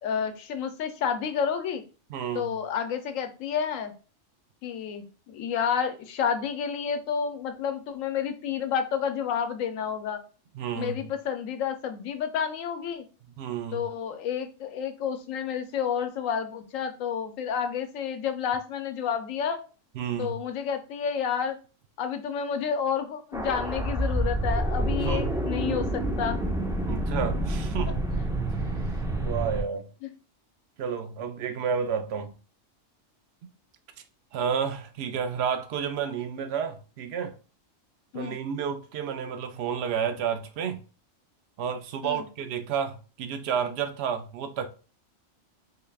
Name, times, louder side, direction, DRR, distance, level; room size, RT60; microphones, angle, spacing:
voice 1, 0.0-1.8 2.3-3.9 4.6-10.2 10.8-13.0 13.7-19.6 20.2-21.6 22.0-26.4 30.0-30.1 38.1-38.4 42.0-42.2, left 7 dB, 85° left, 1.0 m, -30 dB
voice 2, 2.1-2.6 10.5-11.0 13.4-13.9 19.9-20.4 25.0-25.5 26.8-28.1 28.9-29.9 30.8-32.3 34.3-37.3 38.1-40.8 41.6-44.7, right 7 dB, 65° right, 0.7 m, -31 dB
sound 1, 23.3-29.6, right 1 dB, 5° right, 0.3 m, -28 dB
3.8 x 3.3 x 2.3 m
omnidirectional pair, 1.3 m